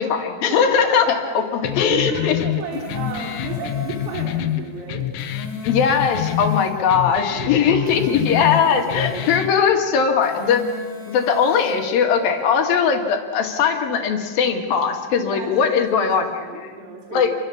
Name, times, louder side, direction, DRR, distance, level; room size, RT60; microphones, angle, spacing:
voice 1, 0.0-1.2 1.5-2.4 5.6-10.6 11.1-16.8 17.1-17.3, left 6 dB, 55° left, 4 dB, 3.1 m, -19 dB
voice 2, 1.0-1.6 1.9-5.1 7.2-7.9 8.6-9.4 15.2-16.1 16.4-17.4, right 4 dB, 90° right, -1 dB, 5.9 m, -33 dB
sound 1, 1.6-9.6, left 12 dB, 90° left, 3.7 m, -27 dB
sound 2, 2.5-4.3 5.0-6.8 7.7-9.5 10.1-11.8, left 4 dB, 5° left, 1.7 m, -37 dB
28.5 x 24.5 x 7.2 m, 1.6 s
omnidirectional pair, 5.8 m